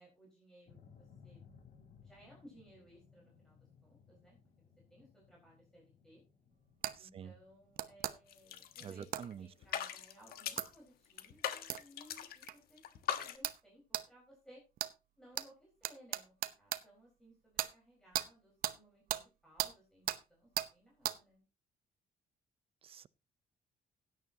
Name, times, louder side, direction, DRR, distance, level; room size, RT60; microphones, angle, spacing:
voice 1, 0.0-1.4 2.0-6.2 7.0-14.6 15.2-21.4, right 1 dB, 5° left, 4.6 m, -61 dB
sound 1, 0.7-8.9, left 6 dB, 60° left, 3.1 m, -63 dB
sound 2, 6.8-7.0 7.8-8.1 9.1-9.3 10.6-10.7 11.7-11.8 12.5-12.6 13.4-13.6 13.9-14.1 14.8-14.9 15.4-15.5 15.8-16.8 17.6-17.7 18.1-18.3 18.6-18.8 19.1-19.2 19.6-19.7 20.1-20.2 20.6-20.7 21.0-21.2, right 12 dB, 65° right, 0.9 m, -36 dB
sound 3, 8.3-9.3 9.6-10.8 11.2-12.5 12.8-13.4, left 10 dB, 75° left, 1.3 m, -40 dB
voice 2, 8.8-9.5 22.8-23.1, right 8 dB, 35° right, 0.5 m, -47 dB
16.5 x 9.5 x 2.8 m
cardioid pair, 145°, 16 cm